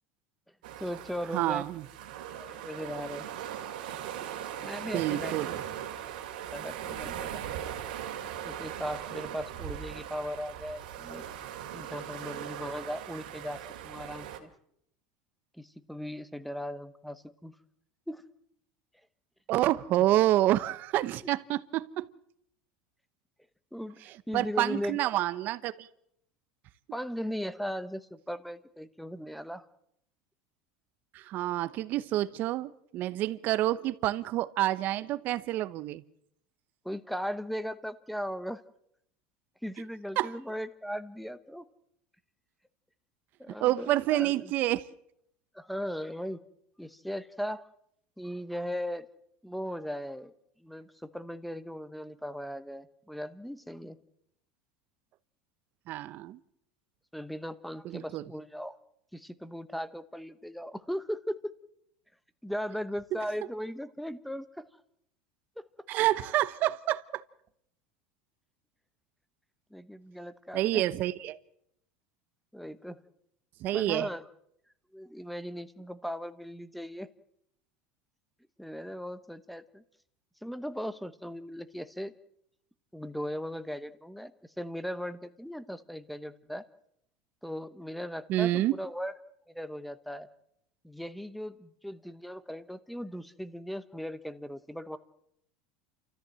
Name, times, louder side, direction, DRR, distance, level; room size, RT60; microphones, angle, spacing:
sound 1, 0.6-14.4, right 10 dB, 90° right, 2.5 m, -39 dB
voice 1, 0.8-1.6 2.3-3.3 4.6-5.3 6.5-7.4 8.4-11.2 11.7-14.5 15.5-17.5 18.1-18.2 19.9-20.1 23.7-24.0 24.3-25.1 26.9-29.7 36.8-38.6 39.6-41.6 43.4-44.5 45.5-46.4 46.8-47.6 48.2-49.1 49.4-50.3 50.6-54.0 57.1-58.8 59.1-61.4 62.4-64.6 65.6-65.7 69.7-70.8 72.5-73.0 73.7-74.2 74.9-77.1 78.6-79.8 80.4-82.1 82.9-86.6 87.4-89.1 89.5-90.3 90.8-95.0, equal, ahead, 0.9 m, -38 dB
voice 2, 1.3-1.8 4.9-5.5 19.5-22.1 24.3-25.9 31.1-36.0 40.2-40.3 43.6-44.9 55.9-56.4 57.8-58.2 65.9-67.2 70.5-71.4 73.6-74.1 88.3-88.7, right 14 dB, 45° right, 0.9 m, -28 dB
29.0 x 14.0 x 7.6 m
supercardioid pair, 140°, 4 cm